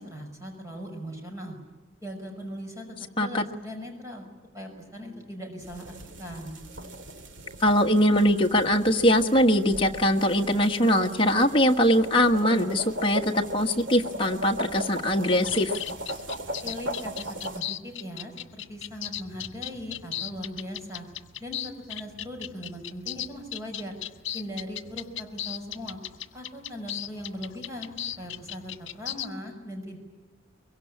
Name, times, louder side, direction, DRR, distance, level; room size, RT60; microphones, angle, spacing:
voice 1, 0.0-1.6 2.0-4.3 4.5-5.9 6.2-6.6 16.6-17.1 17.4-21.1 21.4-24.0 24.3-26.0 26.3-30.0, equal, 15° right, 2 dB, 5.7 m, -39 dB
sound 1, 5.6-17.6, equal, 65° right, 2.2 m, -38 dB
voice 2, 7.6-15.7, equal, 25° left, 2 dB, 1.5 m, -22 dB
sound 2, 15.5-29.3, left 12 dB, 65° left, 1.5 m, -36 dB
24.0 x 23.0 x 10.0 m, 1.2 s
head